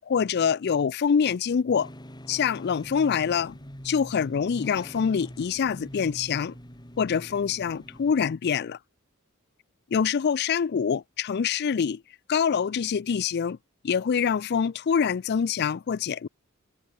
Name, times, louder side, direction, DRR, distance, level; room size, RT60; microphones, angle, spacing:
voice 1, 0.0-1.9 2.3-3.6 3.8-6.6 7.0-8.8 9.9-12.0 12.3-13.6 13.8-16.3, left 6 dB, 50° left, 0.4 m, -25 dB
sound 1, 1.8-8.1, equal, 20° left, 5.8 m, -44 dB
head